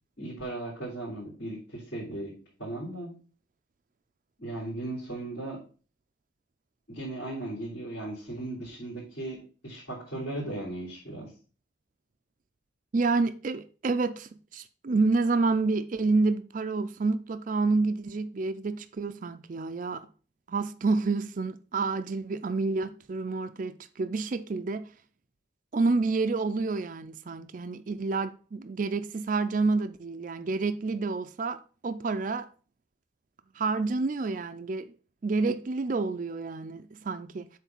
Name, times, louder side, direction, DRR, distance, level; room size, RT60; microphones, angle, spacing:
voice 1, 0.2-2.3 2.6-3.1 4.4-5.6 6.9-11.3, right 1 dB, 65° left, 3.6 m, -37 dB
voice 2, 12.9-20.0 20.5-24.9 25.7-32.5 33.6-34.9 35.2-37.5, right 3 dB, 40° right, 0.4 m, -29 dB
8.1 x 3.3 x 5.6 m
head